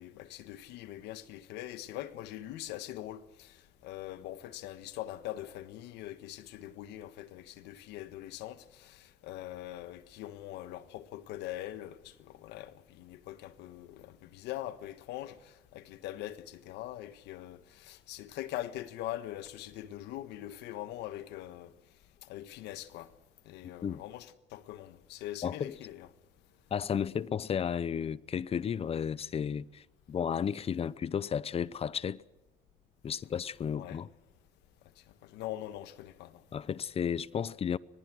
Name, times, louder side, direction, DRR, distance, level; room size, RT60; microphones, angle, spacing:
voice 1, 0.0-21.7 22.3-23.1 23.4-26.1 33.8-34.0 35.2-36.4, left 14 dB, 90° left, 1.4 m, -42 dB
voice 2, 25.4-25.7 26.7-32.2 33.0-34.1 36.5-37.8, left 7 dB, 35° left, 0.7 m, -33 dB
25.0 x 19.5 x 6.3 m
cardioid pair, 110°, 17 cm